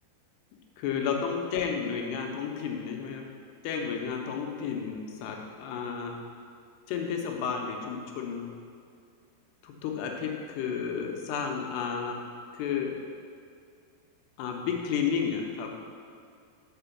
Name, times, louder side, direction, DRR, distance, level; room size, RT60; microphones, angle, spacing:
voice 1, 0.8-3.2 3.6-6.2 6.9-8.5 9.6-12.2 12.5-13.0 14.4-15.7, left 6 dB, 85° left, 1 dB, 2.9 m, -32 dB
6.1 x 5.9 x 7.0 m, 2.3 s
omnidirectional pair, 4.8 m